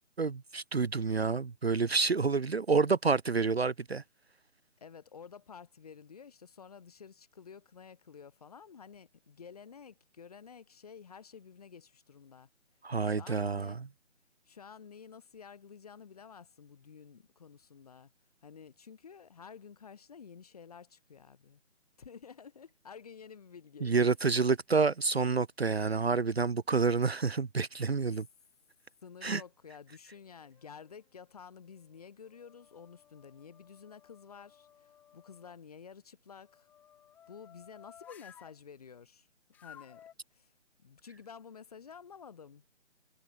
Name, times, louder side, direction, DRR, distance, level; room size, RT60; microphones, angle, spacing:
voice 1, 0.2-4.0 12.8-13.8 23.8-28.3 29.2-29.4, right 4 dB, 50° right, 1.0 m, -28 dB
voice 2, 4.8-12.5 13.0-13.8 14.5-18.1 18.4-21.6 22.0-24.0 29.0-36.7 37.3-39.3 39.6-40.5 40.8-42.7, left 6 dB, 30° left, 5.8 m, -51 dB
sound 1, 30.1-31.0 31.6-35.5 36.4-38.6 39.5-40.1, left 9 dB, 5° left, 4.4 m, -58 dB
figure-of-eight pair, 175°, 39 cm